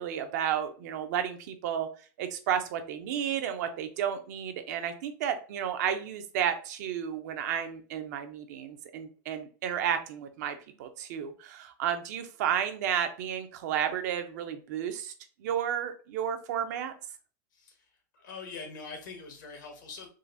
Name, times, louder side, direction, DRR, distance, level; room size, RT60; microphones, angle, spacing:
voice 1, 0.0-1.9 2.2-15.1 15.4-16.9, right 9 dB, 65° right, 8 dB, 0.5 m, -32 dB
voice 2, 17.5-20.1, left 4 dB, 85° left, 3 dB, 1.2 m, -44 dB
3.8 x 2.4 x 2.5 m, 0.38 s
supercardioid pair, 140°, 10 cm